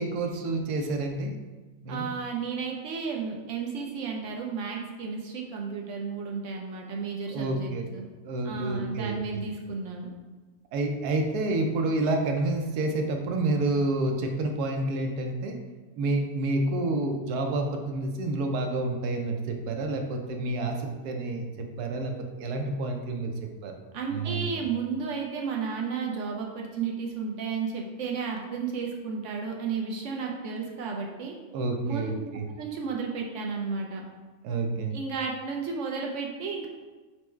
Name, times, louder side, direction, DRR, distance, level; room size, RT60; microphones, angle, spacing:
voice 1, 0.0-1.3 1.8-2.1 7.3-7.9 8.2-9.4 10.7-15.6 16.0-22.1 22.4-23.3 23.6-23.8 24.1-24.5 31.5-32.4 34.4-35.0, right 2 dB, 90° right, 4 dB, 1.1 m, -29 dB
voice 2, 1.9-8.1 8.4-10.1 23.9-31.3 31.8-32.1 32.5-34.0 34.9-36.7, right 5 dB, 65° right, 0 dB, 0.8 m, -33 dB
4.5 x 2.1 x 4.4 m, 1.3 s
omnidirectional pair, 1.6 m